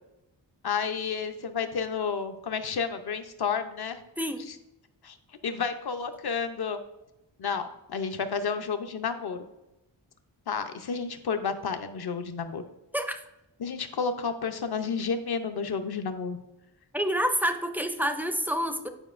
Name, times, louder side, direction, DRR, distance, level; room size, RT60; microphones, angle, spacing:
voice 1, 0.6-4.0 4.5-4.6 5.0-5.2 5.4-6.8 7.4-9.5 10.5-12.6 13.6-16.4, left 5 dB, 60° left, 8 dB, 0.7 m, -31 dB
voice 2, 4.2-4.5 12.9-13.2 16.9-18.9, equal, 5° right, 8 dB, 0.4 m, -28 dB
9.8 x 4.9 x 2.5 m, 0.95 s
wide cardioid pair, 100°, 43 cm